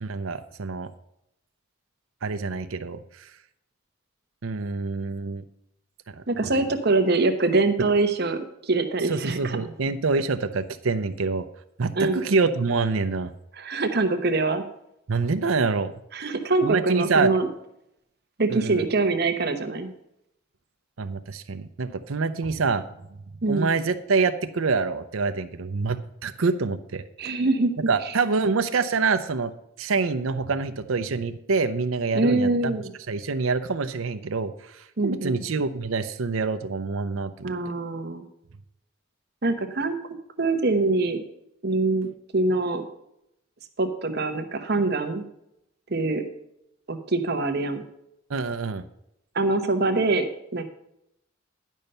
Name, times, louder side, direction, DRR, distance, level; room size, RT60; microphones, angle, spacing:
voice 1, 0.0-0.9 2.2-3.3 4.4-5.4 6.1-6.5 9.1-11.5 11.8-13.3 15.1-15.9 16.6-17.3 18.5-18.8 21.0-22.9 23.5-27.0 27.9-29.5 29.8-32.8 33.1-37.5 48.3-48.8, right 4 dB, 85° right, 9 dB, 0.7 m, -26 dB
voice 2, 6.3-9.6 12.0-12.2 13.5-14.6 16.1-17.5 18.4-19.9 23.4-23.7 27.2-27.7 32.1-32.9 35.0-35.4 37.4-38.2 39.4-39.9 40.4-41.2 41.6-42.8 43.8-45.2 45.9-46.2 46.9-47.8 49.3-50.6, right 3 dB, 50° right, 7 dB, 1.0 m, -24 dB
11.0 x 5.5 x 6.7 m, 0.79 s
head